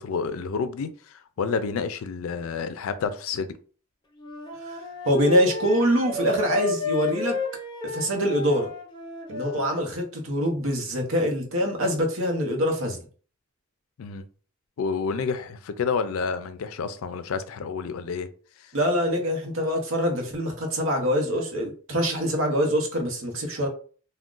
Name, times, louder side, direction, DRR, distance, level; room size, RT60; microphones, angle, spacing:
voice 1, 0.0-3.6 14.0-14.3 14.8-18.3 18.6-18.7, left 5 dB, 80° left, 0.4 m, -29 dB
Wind instrument woodwind instrument, 4.2-9.7, left 4 dB, 20° left, 0.5 m, -32 dB
voice 2, 5.0-7.4 7.8-8.7 9.3-13.0 18.7-23.7, equal, 70° right, 0.8 m, -24 dB
2.4 x 2.2 x 3.7 m
head